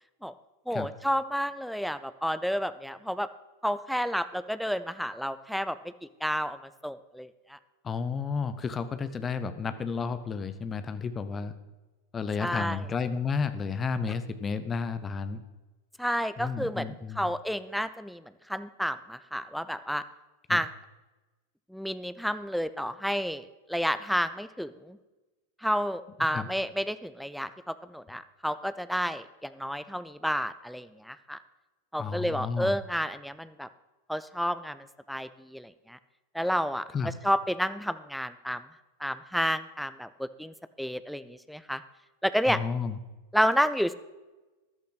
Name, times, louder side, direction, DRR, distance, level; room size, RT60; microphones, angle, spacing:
voice 1, 0.7-3.3 3.6-5.8 6.2-6.6 6.8-7.6 12.4-12.8 16.0-16.9 17.2-18.2 18.5-20.0 20.5-20.7 21.7-25.0 25.6-31.4 31.9-33.7 34.1-36.0 36.3-36.9 37.2-38.6 39.0-41.8 42.2-42.6 43.3-43.9, equal, ahead, 13 dB, 0.6 m, -30 dB
voice 2, 7.8-11.5 12.1-15.4 16.4-17.3 20.5-20.6 26.3-26.5 32.0-32.8 36.9-37.1 42.5-43.0, left 5 dB, 20° left, 11 dB, 0.9 m, -32 dB
13.5 x 12.0 x 4.1 m, 1.1 s
figure-of-eight pair, 90°, 0 cm